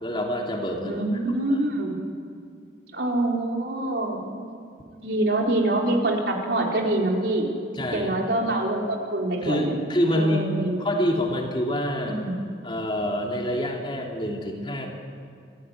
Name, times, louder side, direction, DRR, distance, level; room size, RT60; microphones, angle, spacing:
voice 1, 0.0-1.0 7.8-8.1 9.4-10.4 10.8-12.2 12.6-14.9, equal, 25° left, 0 dB, 3.3 m, -26 dB
voice 2, 0.9-2.0 2.9-4.4 5.0-7.5 7.9-9.8 10.1-10.8 12.0-12.4, right 1 dB, 60° right, 0 dB, 4.0 m, -25 dB
29.0 x 15.5 x 9.5 m, 2.2 s
head